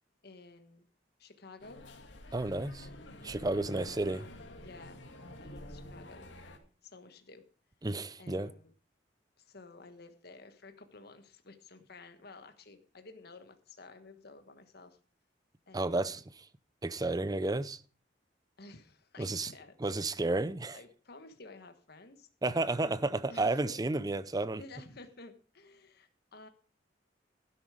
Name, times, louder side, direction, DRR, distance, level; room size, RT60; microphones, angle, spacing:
voice 1, 0.2-0.8 1.2-1.8 2.8-3.8 4.6-5.0 5.4-6.3 6.8-7.4 8.2-8.7 9.4-15.0 15.7-16.2 18.6-20.3 20.7-22.3 23.3-23.8 24.6-26.5, left 3 dB, 60° left, 1.4 m, -53 dB
sound 1, 1.6-6.6, left 1 dB, 75° left, 2.1 m, -49 dB
voice 2, 2.3-2.9 3.2-4.3 7.8-8.5 15.7-16.4 16.8-17.8 19.2-19.5 19.8-20.8 22.4-24.6, right 2 dB, 20° right, 0.6 m, -32 dB
12.5 x 10.0 x 5.0 m
head